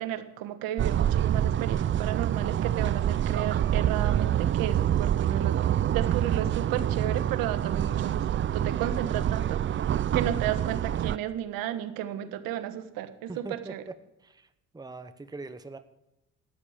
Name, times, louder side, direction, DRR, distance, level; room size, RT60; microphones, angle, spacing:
voice 1, 0.0-9.6 10.1-13.8, right 11 dB, 90° right, 10 dB, 1.4 m, -33 dB
sound 1, 0.8-11.2, right 10 dB, 35° right, 0.4 m, -26 dB
voice 2, 13.3-13.7 14.2-14.5 14.7-15.8, right 3 dB, 10° right, 10 dB, 0.9 m, -41 dB
13.5 x 9.9 x 8.9 m, 0.92 s
cardioid pair, 80°, 33 cm